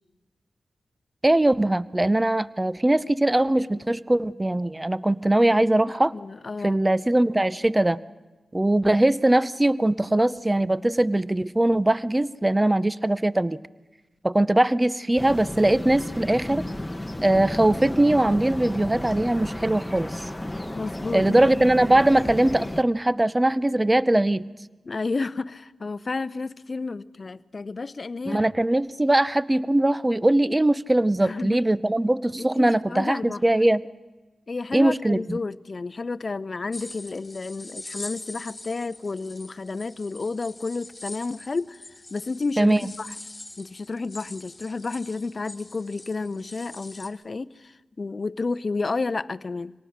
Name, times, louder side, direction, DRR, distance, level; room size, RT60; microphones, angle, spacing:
voice 1, 1.2-6.1 6.6-8.0 8.5-13.6 14.2-16.6 17.2-20.3 21.1-24.5 28.3-33.8 34.7-35.4 42.6-42.9, right 1 dB, 20° right, 18 dB, 0.7 m, -21 dB
voice 2, 6.1-6.8 20.7-21.5 24.8-28.4 31.2-31.6 32.4-33.4 34.5-43.1 43.6-49.7, left 3 dB, 50° left, 15 dB, 0.6 m, -31 dB
sound 1, 15.2-22.8, left 1 dB, 15° left, 1.1 m, -33 dB
sound 2, 36.7-47.1, left 2 dB, 30° left, 2.6 m, -43 dB
25.5 x 18.5 x 6.6 m, 1.2 s
cardioid pair, 50°, 0 cm